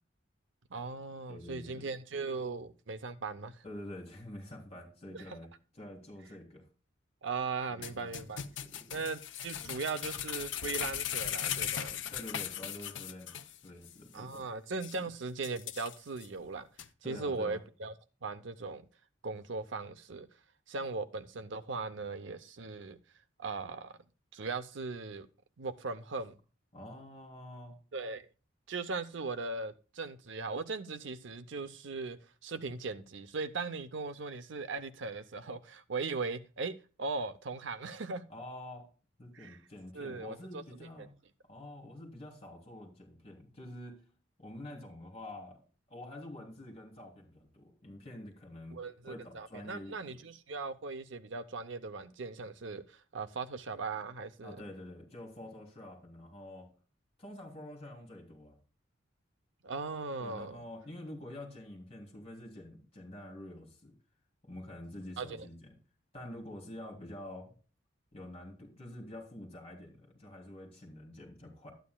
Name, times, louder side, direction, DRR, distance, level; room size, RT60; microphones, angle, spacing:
voice 1, 0.7-3.6 5.1-5.2 7.2-8.4 8.9-12.0 14.1-16.7 17.0-17.9 18.2-18.9 19.2-20.3 20.7-23.0 23.4-23.9 24.3-25.3 25.6-26.4 27.9-28.3 28.7-36.7 37.0-38.2 39.3-39.6 39.9-41.1 48.7-54.6 59.6-60.6 65.2-65.5, right 4 dB, 70° right, 0.6 m, -39 dB
voice 2, 1.3-1.9 3.6-5.5 5.7-6.6 7.7-9.0 12.1-13.3 13.6-14.5 14.9-15.0 17.0-17.6 26.7-27.8 38.3-38.8 39.2-41.1 41.5-44.0 44.4-45.6 45.9-48.8 49.0-50.1 54.4-56.7 57.2-58.6 60.2-63.9 64.4-65.5 66.1-67.5 68.1-71.7, left 1 dB, 30° left, 3.3 m, -47 dB
sound 1, 7.8-13.6 13.8-13.9 14.4-14.5 14.8-15.0 15.4-16.3 16.8-16.9, left 10 dB, 70° left, 0.7 m, -38 dB
12.5 x 9.1 x 2.3 m
head